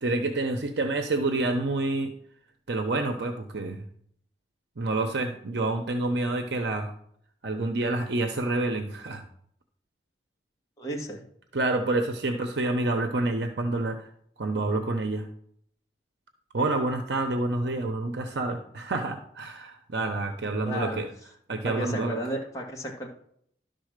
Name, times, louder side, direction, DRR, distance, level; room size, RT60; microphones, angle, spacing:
voice 1, 0.0-2.1 2.7-3.8 4.8-6.9 7.4-9.2 11.5-14.1 14.4-15.3 16.5-21.1 21.5-22.2, right 2 dB, 80° right, 6 dB, 0.8 m, -28 dB
voice 2, 10.8-11.2 20.6-21.0 21.6-23.1, equal, 20° left, -1 dB, 1.8 m, -33 dB
11.5 x 4.0 x 6.6 m, 0.67 s
head